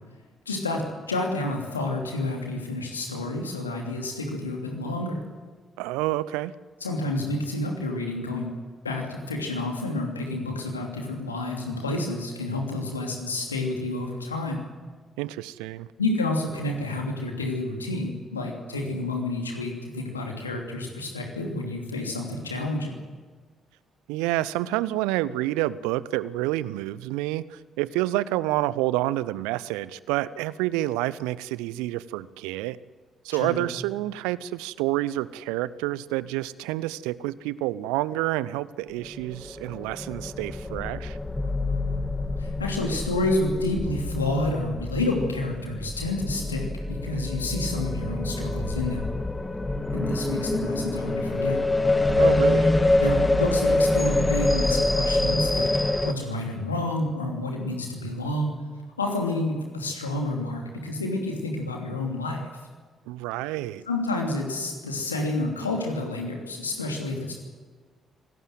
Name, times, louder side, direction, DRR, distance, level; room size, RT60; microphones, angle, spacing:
voice 1, 0.5-5.2 6.8-8.5 8.8-14.6 16.0-23.0 33.3-33.6 42.4-49.1 49.9-51.6 53.0-58.6 59.0-62.4 63.9-67.3, left 2 dB, 85° left, 1 dB, 2.9 m, -29 dB
voice 2, 5.8-6.5 15.2-15.9 24.1-32.8 33.2-41.2 52.2-52.7 63.1-63.8, right 16 dB, 70° right, 19 dB, 0.7 m, -28 dB
sound 1, 39.2-56.1, left 2 dB, 15° left, 2.1 m, -25 dB
25.5 x 18.0 x 7.8 m, 1.5 s
figure-of-eight pair, 40°, 0 cm